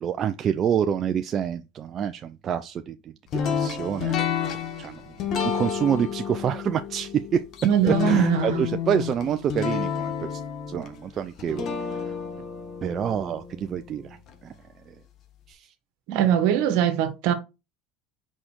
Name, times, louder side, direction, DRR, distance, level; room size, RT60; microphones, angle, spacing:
voice 1, 0.0-3.1 3.5-4.2 4.8-5.0 5.3-7.4 7.8-10.4 10.7-12.1 12.8-14.2 14.4-14.5 14.9-15.0 15.5-15.7, right 8 dB, 45° right, 0.5 m, -27 dB
sound 1, 3.3-14.4, left 8 dB, 55° left, 1.5 m, -30 dB
voice 2, 7.6-8.6 16.1-17.3, right 10 dB, 70° right, 1.4 m, -22 dB
5.1 x 4.2 x 4.5 m
hypercardioid pair, 90°, 0 cm